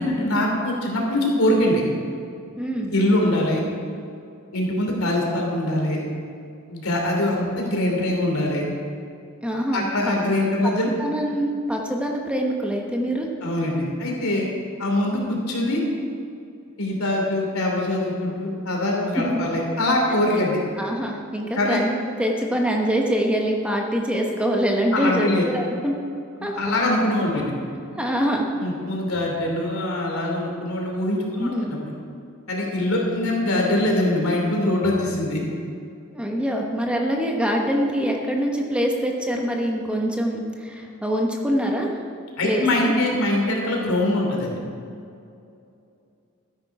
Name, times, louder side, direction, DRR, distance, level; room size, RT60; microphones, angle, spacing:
voice 1, 0.0-1.8 2.9-3.6 4.5-6.0 6.7-8.6 9.7-10.9 13.4-14.5 14.8-15.8 16.8-20.6 21.5-21.8 24.9-25.4 26.4-27.5 28.6-31.9 32.5-35.4 42.4-44.6, left 1 dB, 85° left, -1 dB, 3.1 m, -23 dB
voice 2, 2.6-2.9 9.4-10.2 10.6-13.3 19.3-19.4 20.3-20.4 20.8-21.9 22.2-25.9 26.4-26.5 28.0-28.5 31.4-31.7 33.0-33.1 36.1-41.9 42.4-42.9, equal, 5° right, 0 dB, 1.1 m, -24 dB
13.0 x 10.5 x 4.8 m, 2.6 s
head